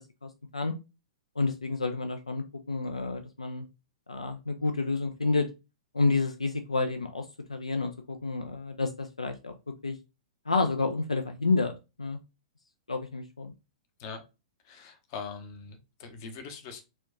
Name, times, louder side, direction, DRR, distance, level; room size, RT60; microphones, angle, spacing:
voice 1, 0.2-0.7 1.4-3.7 4.1-5.5 5.9-9.5 9.8-10.0 10.5-11.7 12.0-12.2 12.9-13.5, left 3 dB, 80° left, 0.4 m, -29 dB
voice 2, 14.6-16.8, left 5 dB, 40° left, 0.8 m, -42 dB
4.2 x 2.3 x 2.7 m
figure-of-eight pair, 105°, 3 cm